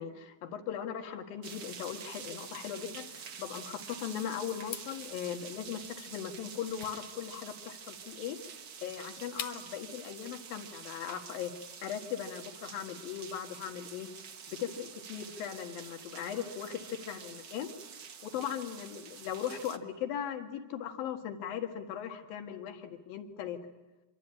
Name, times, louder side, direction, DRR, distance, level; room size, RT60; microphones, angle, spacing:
voice 1, 0.0-8.4 8.8-11.5 11.8-14.1 14.5-17.7 18.2-23.6, left 9 dB, 85° left, 5 dB, 3.6 m, -39 dB
sound 1, 1.4-19.8, right 7 dB, 80° right, 0.9 m, -47 dB
sound 2, 4.6-9.9, left 10 dB, 65° left, 2.1 m, -47 dB
26.0 x 24.5 x 8.9 m, 1.1 s
omnidirectional pair, 4.0 m